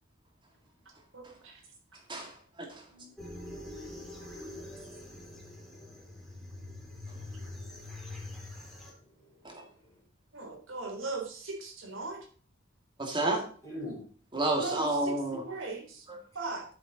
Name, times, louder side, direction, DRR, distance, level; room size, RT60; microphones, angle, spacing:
voice 1, 1.1-1.6 10.3-12.2 14.5-16.1 16.3-16.7, right 3 dB, 70° right, 1 dB, 3.5 m, -39 dB
voice 2, 2.1-2.8 7.1-7.2 9.4-9.6 13.0-13.4 14.3-15.4 16.1-16.2, right 2 dB, 25° right, 2 dB, 2.5 m, -31 dB
voice 3, 2.9-8.6 9.0-10.0 13.6-14.0, left 1 dB, 15° left, -4 dB, 4.4 m, -50 dB
sound 1, 3.2-8.9, left 2 dB, ahead, 3.2 m, -44 dB
13.0 x 7.3 x 4.0 m, 0.43 s
head